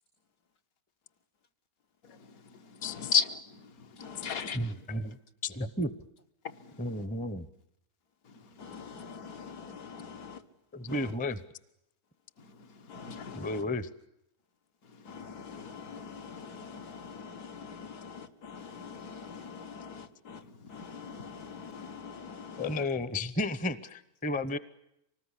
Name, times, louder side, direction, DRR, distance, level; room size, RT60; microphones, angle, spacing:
voice 1, 2.0-4.8 5.0-5.2 6.4-7.1 8.2-9.4 11.1-11.2 12.4-13.6 14.8-15.9 16.6-16.7 19.0-19.1 20.5-20.8 21.2-21.5, left 5 dB, 70° left, 1.6 m, -37 dB
voice 2, 2.8-3.1 3.7-4.5 8.5-10.5 10.7-11.1 12.4-13.7 15.0-22.9, left 6 dB, 90° left, 2.1 m, -45 dB
voice 3, 4.5-5.2 5.4-5.9 6.8-7.5 10.7-11.4 13.4-13.9 22.6-24.6, left 1 dB, 10° left, 0.5 m, -32 dB
25.0 x 19.5 x 9.9 m
omnidirectional pair, 1.6 m